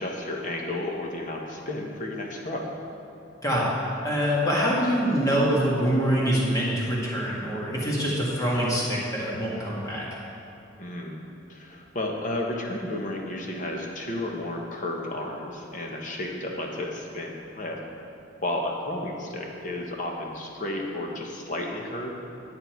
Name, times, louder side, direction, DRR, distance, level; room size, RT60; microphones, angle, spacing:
voice 1, 0.0-2.7 10.8-11.2 11.5-17.8 18.4-22.1, left 1 dB, 40° left, 0 dB, 1.2 m, -32 dB
voice 2, 3.4-3.8 4.0-10.1, equal, 20° left, -5 dB, 1.8 m, -25 dB
9.7 x 8.8 x 4.6 m, 2.8 s
head